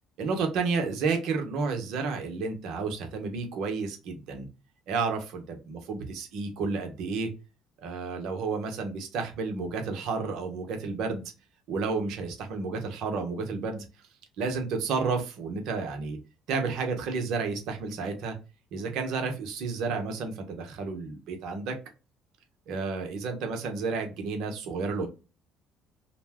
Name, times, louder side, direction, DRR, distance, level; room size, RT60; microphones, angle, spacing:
voice 1, 0.2-4.5 4.9-7.3 7.8-11.3 11.7-13.8 14.4-16.2 16.5-18.4 18.7-21.8 22.7-25.1, right 4 dB, 70° right, 4 dB, 0.8 m, -31 dB
2.6 x 2.1 x 3.4 m, 0.29 s
supercardioid pair, 70°, 0 cm